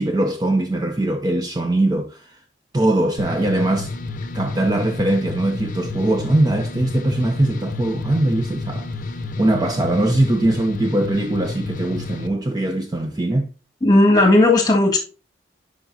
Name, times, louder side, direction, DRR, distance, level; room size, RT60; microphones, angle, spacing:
voice 1, 0.0-2.4 2.7-3.9 4.3-9.0 9.4-13.5, right 1 dB, 20° right, 0.5 m, -21 dB
sound 1, 3.2-12.3, left 3 dB, 45° left, 0.7 m, -30 dB
voice 2, 13.8-15.0, left 2 dB, 20° left, 1.6 m, -14 dB
10.5 x 4.9 x 2.6 m
head